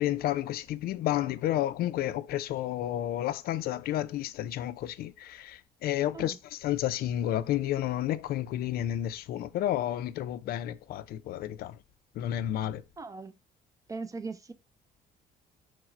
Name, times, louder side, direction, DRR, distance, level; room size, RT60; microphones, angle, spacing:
voice 1, 0.0-11.8 12.2-12.8, left 12 dB, 65° left, 0.4 m, -31 dB
voice 2, 13.0-13.3 13.9-14.5, right 4 dB, 20° right, 0.4 m, -39 dB
4.6 x 2.1 x 4.3 m
cardioid pair, 110°, 17 cm